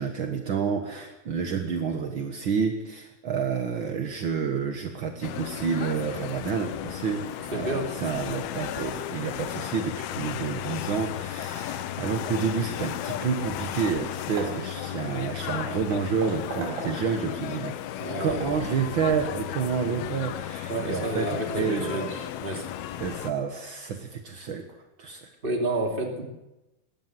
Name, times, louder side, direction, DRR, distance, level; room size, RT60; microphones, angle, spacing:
voice 1, 0.0-17.8 18.2-22.2 23.0-24.7 25.0-25.3, right 6 dB, 60° right, 5 dB, 1.2 m, -29 dB
sound 1, 5.2-23.3, left 12 dB, 85° left, 2.9 m, -34 dB
voice 2, 7.5-7.9 18.0-18.3 20.7-22.6 25.4-26.2, right 2 dB, 15° right, 2 dB, 2.6 m, -30 dB
Hammer / Wood, 13.8-14.0 14.4-17.2 17.7-18.7, right 3 dB, 90° right, 7.0 m, -39 dB
20.5 x 17.0 x 7.8 m, 0.98 s
omnidirectional pair, 4.4 m